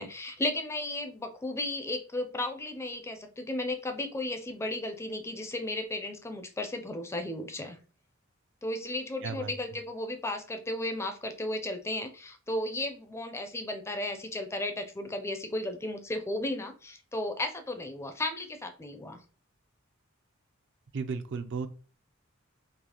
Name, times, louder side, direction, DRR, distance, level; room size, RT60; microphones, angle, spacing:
voice 1, 0.0-7.8 8.6-19.2, left 1 dB, 15° left, 6 dB, 0.4 m, -34 dB
voice 2, 9.2-9.5 20.9-21.7, right 5 dB, 60° right, 8 dB, 0.5 m, -34 dB
4.0 x 2.7 x 2.8 m, 0.37 s
head